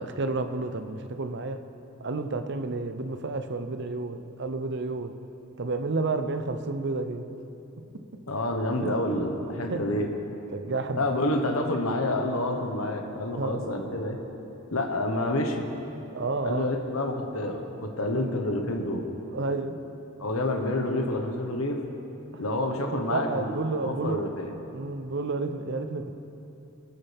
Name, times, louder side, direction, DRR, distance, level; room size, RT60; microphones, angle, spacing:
voice 1, 0.0-1.6 2.0-5.2 5.6-7.3 7.9-8.0 8.8-9.0 9.7-10.1 10.5-11.1 13.4-13.6 16.1-16.7 19.3-19.8 23.1-24.3 24.7-26.1, right 3 dB, 55° right, 8 dB, 0.7 m, -30 dB
voice 2, 8.3-10.1 10.9-14.2 14.7-15.7 16.4-19.0 20.2-21.8 22.4-24.5, left 1 dB, 70° left, 2 dB, 1.4 m, -28 dB
22.0 x 11.0 x 3.6 m, 3.0 s
head